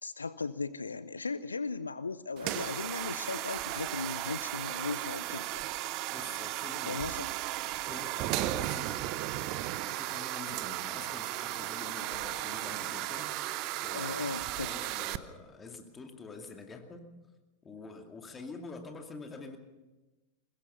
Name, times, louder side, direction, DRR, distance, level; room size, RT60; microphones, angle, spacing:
voice 1, 0.0-5.6 6.9-7.3 13.9-14.7, left 4 dB, 75° left, 16 dB, 0.6 m, -37 dB
sound 1, 2.4-15.2, right 15 dB, 40° right, 0.8 m, -35 dB
voice 2, 6.1-7.0 7.8-8.9 9.8-13.3 13.8-17.1 17.6-19.6, left 4 dB, 20° left, 4 dB, 2.4 m, -46 dB
22.0 x 21.0 x 5.7 m, 1.1 s
figure-of-eight pair, 90°, 0 cm